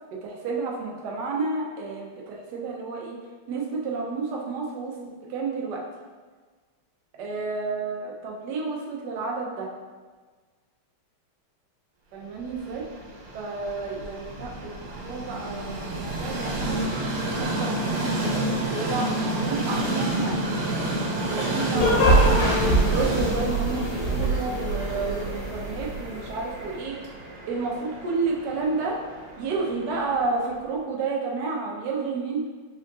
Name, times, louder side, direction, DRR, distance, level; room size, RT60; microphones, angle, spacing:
voice 1, 0.2-3.2 3.5-4.9 5.3-5.8 7.1-9.7 12.1-12.8 13.3-20.4 21.3-27.0 27.5-29.0 29.4-32.5, right 4 dB, 65° right, -2 dB, 1.2 m, -31 dB
Train, 12.4-30.5, right 1 dB, 85° right, 1.7 m, -30 dB
sound 1, 21.7-26.4, right 1 dB, 75° left, 1.5 m, -23 dB
4.9 x 3.8 x 2.3 m, 1.4 s
omnidirectional pair, 2.3 m